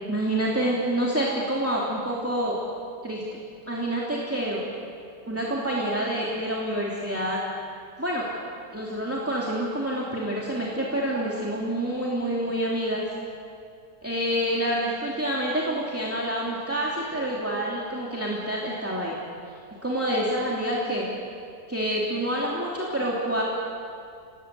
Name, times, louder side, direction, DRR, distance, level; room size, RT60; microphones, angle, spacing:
voice 1, 0.1-2.6 3.0-3.4 3.7-4.6 5.2-7.4 8.0-8.3 8.7-13.0 14.0-19.2 19.8-21.1 21.7-23.4, right 1 dB, 10° right, -5 dB, 3.0 m, -27 dB
28.5 x 18.5 x 8.3 m, 2.4 s
omnidirectional pair, 1.7 m